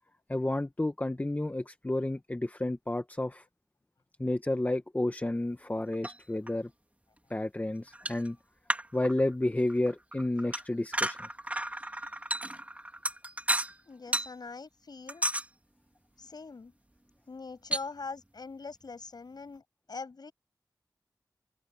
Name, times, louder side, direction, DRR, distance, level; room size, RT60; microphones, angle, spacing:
voice 1, 0.3-3.4 4.2-6.7 7.3-8.4 8.9-11.2, left 1 dB, 25° left, 1.3 m, -31 dB
sound 1, 5.9-6.2 6.5-6.6 7.9-8.3 8.7-9.4 9.7-13.8 14.1-14.3 15.1-15.5 17.7-17.8, right 1 dB, 20° right, 4.0 m, -33 dB
voice 2, 13.9-15.3 16.2-16.7 17.3-20.3, left 4 dB, 75° left, 7.0 m, -43 dB
cardioid pair, 50°, 7 cm